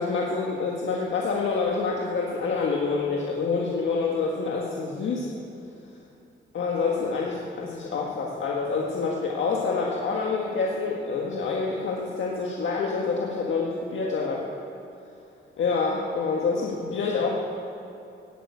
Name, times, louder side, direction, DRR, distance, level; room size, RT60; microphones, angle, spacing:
voice 1, 0.0-5.3 6.5-14.4 15.6-17.3, left 4 dB, 70° left, -2 dB, 1.7 m, -27 dB
17.0 x 9.4 x 8.5 m, 2.7 s
wide cardioid pair, 140°, 20 cm